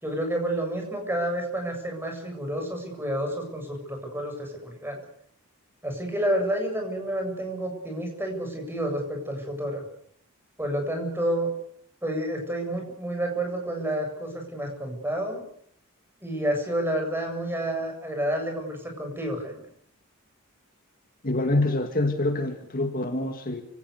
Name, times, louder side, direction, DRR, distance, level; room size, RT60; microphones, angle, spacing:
voice 1, 0.0-5.0 5.8-9.8 10.6-11.5 12.0-15.4 16.2-19.6, right 1 dB, 10° right, 3 dB, 7.6 m, -29 dB
voice 2, 21.2-23.6, left 2 dB, 40° left, 6 dB, 2.1 m, -26 dB
29.0 x 18.5 x 6.7 m, 0.63 s
head